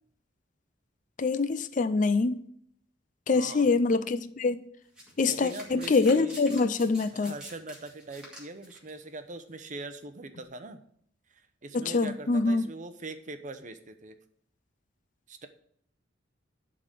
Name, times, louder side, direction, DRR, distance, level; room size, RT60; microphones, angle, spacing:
voice 1, 1.2-2.4 3.3-4.7 5.2-7.3 11.7-12.7, left 4 dB, 40° left, 0.4 m, -25 dB
voice 2, 3.3-3.7 5.2-6.4 7.1-10.8 11.3-14.2 15.3-15.5, right 2 dB, 40° right, 0.8 m, -42 dB
Domestic sounds home sounds, 5.0-8.9 9.8-10.0, equal, 5° right, 2.2 m, -46 dB
11.0 x 3.9 x 6.7 m
head